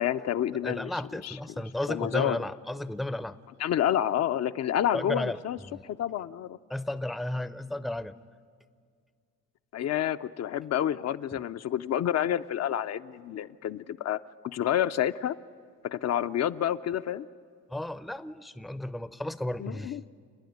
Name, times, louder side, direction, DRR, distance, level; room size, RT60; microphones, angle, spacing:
voice 1, 0.0-0.9 1.2-1.4 1.9-2.4 3.6-5.6 5.8-6.6 9.7-15.4 15.8-17.3 19.6-20.0, left 11 dB, 60° left, 10 dB, 0.5 m, -29 dB
voice 2, 0.6-3.4 4.9-5.4 5.7-5.8 6.7-8.1 11.3-11.4 17.7-20.0, left 1 dB, ahead, 13 dB, 0.5 m, -33 dB
29.0 x 10.0 x 9.3 m, 2.1 s
cardioid pair, 90°, 30 cm